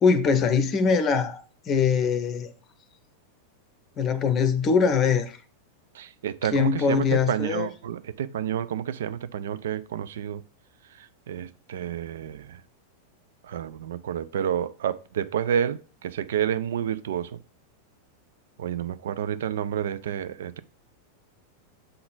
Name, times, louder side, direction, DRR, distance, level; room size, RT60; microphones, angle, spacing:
voice 1, 0.0-2.5 4.0-5.4 6.5-7.7, left 5 dB, 30° left, 0.7 m, -22 dB
voice 2, 5.9-10.4 11.3-12.6 13.4-17.4 18.6-20.6, right 9 dB, 60° right, 0.3 m, -29 dB
6.7 x 3.8 x 3.8 m
figure-of-eight pair, 90°, 0 cm